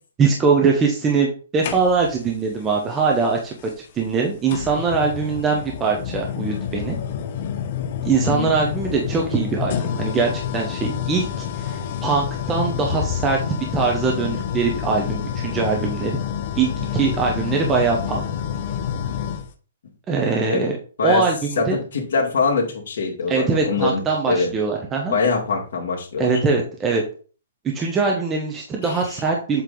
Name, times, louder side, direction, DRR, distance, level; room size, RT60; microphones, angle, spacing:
voice 1, 0.2-3.5 3.9-7.0 8.0-13.4 13.7-16.1 16.5-18.3 20.1-20.8 21.0-21.8 23.3-25.1 26.2-27.0 27.7-29.6, right 4 dB, 15° right, 0 dB, 0.9 m, -22 dB
sound 1, 1.6-2.3 3.6-3.7 4.5-19.5, left 8 dB, 40° left, 0.7 m, -28 dB
voice 2, 21.6-24.5 25.1-26.3 28.8-29.0, left 4 dB, 65° left, -3 dB, 2.0 m, -23 dB
7.5 x 3.3 x 3.9 m, 0.39 s
hypercardioid pair, 160°, 0 cm